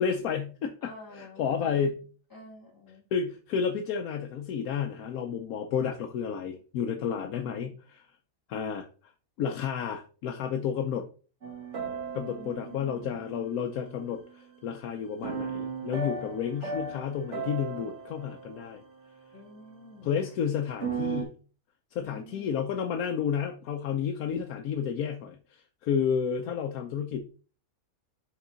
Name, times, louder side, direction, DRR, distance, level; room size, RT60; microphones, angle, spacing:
voice 1, 0.0-2.0 3.1-8.0 8.5-9.1 9.4-11.1 12.1-18.8 20.0-21.4 21.9-27.2, left 7 dB, 85° left, 4 dB, 1.2 m, -31 dB
voice 2, 0.8-1.9 2.3-3.0 7.0-7.7 12.3-13.2 19.3-20.1 22.0-22.8, left 2 dB, 15° left, -3 dB, 2.7 m, -49 dB
sound 1, 11.4-14.1 15.2-19.6 20.6-21.2, right 5 dB, 55° right, 1.7 m, -37 dB
7.5 x 3.8 x 4.0 m, 0.37 s
omnidirectional pair, 1.5 m